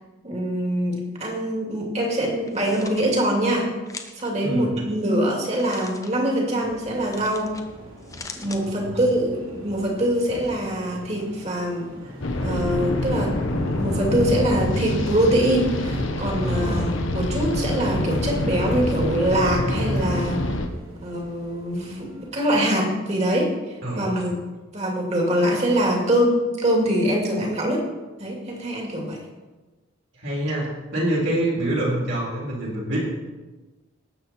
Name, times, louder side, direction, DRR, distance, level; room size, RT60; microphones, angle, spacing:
voice 1, 0.2-3.7 4.2-7.6 8.4-11.9 12.4-20.4 21.0-24.3 24.7-27.9 28.2-29.2, right 1 dB, 30° right, -1 dB, 2.6 m, -24 dB
sound 1, 2.4-3.0 3.9-4.3 5.5-6.1 7.1-7.6 8.0-8.6, left 4 dB, 15° left, 0.8 m, -40 dB
voice 2, 4.4-4.7 8.6-9.0 16.4-16.8 23.8-24.2 30.1-30.7 30.9-33.0, right 1 dB, 60° right, -4 dB, 3.9 m, -26 dB
sound 2, 6.6-22.3, equal, 90° right, 3.0 m, -38 dB
sound 3, 12.2-20.7, left 1 dB, 70° left, 1.2 m, -26 dB
19.0 x 7.7 x 4.4 m, 1.2 s
head